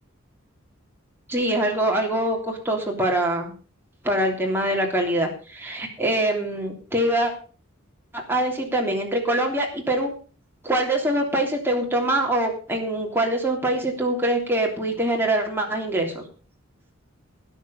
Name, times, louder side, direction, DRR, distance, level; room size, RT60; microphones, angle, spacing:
voice 1, 1.3-3.5 4.0-7.3 8.1-10.1 10.6-16.2, right 1 dB, 10° right, 0 dB, 3.2 m, -24 dB
13.0 x 9.9 x 5.6 m, 0.39 s
head